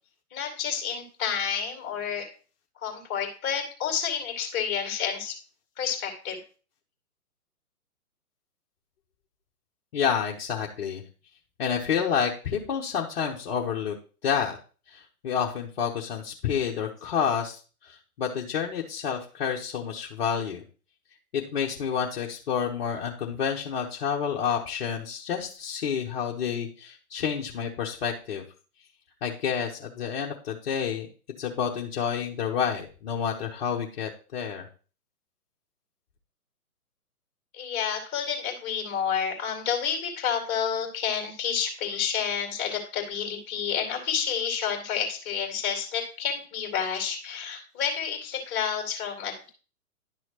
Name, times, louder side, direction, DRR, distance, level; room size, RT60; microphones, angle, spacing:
voice 1, 0.3-2.3 2.8-5.4 5.8-6.4 37.5-49.5, left 7 dB, 20° left, 2 dB, 2.2 m, -30 dB
voice 2, 9.9-11.0 11.6-13.9 14.2-14.6 14.9-20.6 21.3-28.4 29.2-31.1 31.4-34.7, left 7 dB, 40° left, -2 dB, 1.1 m, -29 dB
10.5 x 6.1 x 2.9 m, 0.37 s
figure-of-eight pair, 130°, 46 cm